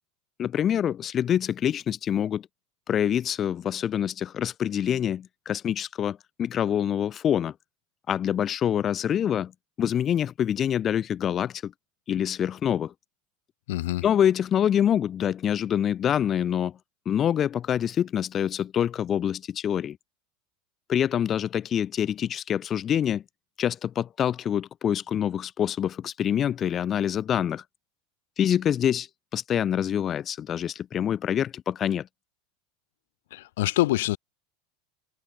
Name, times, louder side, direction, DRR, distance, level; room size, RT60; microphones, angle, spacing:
voice 1, 0.4-2.5 2.9-7.5 8.1-9.5 9.8-11.7 12.1-12.9 14.0-16.7 17.1-20.0 20.9-23.2 23.6-27.6 28.4-32.1, left 9 dB, 35° left, 0.6 m, -26 dB
voice 2, 13.7-14.0 33.3-34.2, left 17 dB, 75° left, 1.1 m, -25 dB
supercardioid pair, 115°, 0 cm